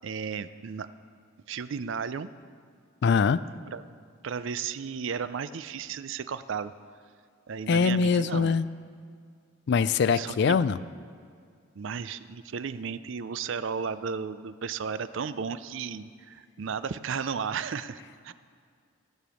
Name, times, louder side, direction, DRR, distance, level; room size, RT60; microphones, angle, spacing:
voice 1, 0.0-0.9 1.5-2.3 3.7-3.8 4.2-6.7 7.5-8.5 10.1-10.6 11.7-18.3, right 6 dB, 60° right, 14 dB, 0.4 m, -34 dB
voice 2, 3.0-3.4 7.7-8.7 9.7-10.8, left 5 dB, 50° left, 16 dB, 0.3 m, -23 dB
16.0 x 6.9 x 6.3 m, 2.2 s
head